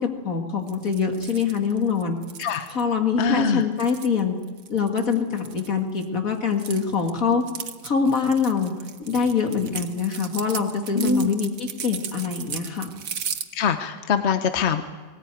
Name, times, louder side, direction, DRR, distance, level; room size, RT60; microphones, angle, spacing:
voice 1, 0.0-2.2 2.7-4.4 4.7-7.4 7.8-8.7 9.0-12.9, left 6 dB, 85° left, 4 dB, 2.6 m, -24 dB
sound 1, 0.7-2.8 3.6-6.0 6.3-13.4, right 7 dB, 90° right, 1.5 m, -36 dB
voice 2, 3.2-3.6 10.9-11.3 13.5-14.8, left 5 dB, 55° left, 8 dB, 1.2 m, -23 dB
19.5 x 19.0 x 9.1 m, 1.4 s
omnidirectional pair, 1.4 m